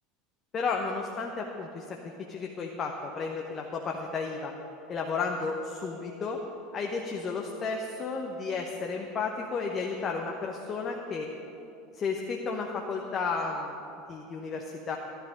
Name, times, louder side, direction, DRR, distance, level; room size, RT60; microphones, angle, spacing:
voice 1, 0.5-4.5 4.9-6.4 6.7-11.3 11.9-13.8 14.1-15.0, left 4 dB, 35° left, 1 dB, 1.0 m, -33 dB
12.5 x 11.5 x 5.2 m, 2.8 s
figure-of-eight pair, 75°, 0 cm